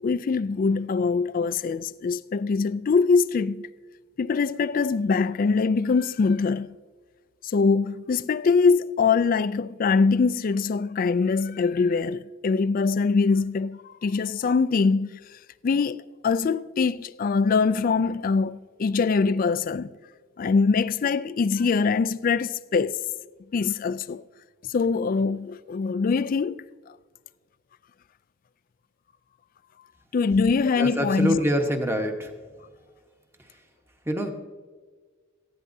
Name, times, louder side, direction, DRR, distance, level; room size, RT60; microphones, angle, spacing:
voice 1, 0.0-3.7 4.2-6.7 7.4-15.2 15.6-19.9 20.4-23.0 23.5-24.2 24.7-26.7 30.1-31.4, left 4 dB, 40° left, 0.3 m, -23 dB
voice 2, 30.8-32.4 33.4-33.6 34.0-34.3, equal, 10° right, 1.1 m, -26 dB
18.0 x 14.5 x 2.7 m
head